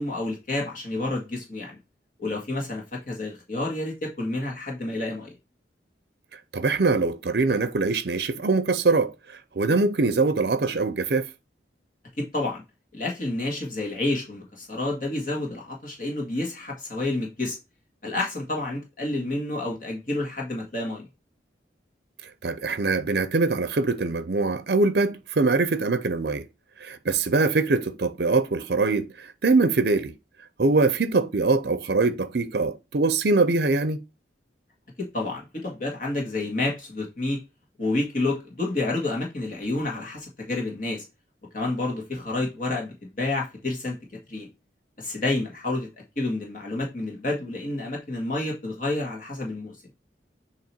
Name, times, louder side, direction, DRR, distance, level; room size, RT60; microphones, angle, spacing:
voice 1, 0.0-1.8 2.2-5.3 12.2-12.6 12.9-17.6 18.0-21.1 35.1-37.4 37.8-41.0 41.5-44.0 44.3-44.5 45.0-45.9 46.2-49.8, left 2 dB, 45° left, 1.8 m, -29 dB
voice 2, 6.5-11.3 22.4-26.4 26.8-30.1 30.6-34.0, right 3 dB, 60° right, 0.6 m, -23 dB
7.6 x 3.0 x 4.4 m
head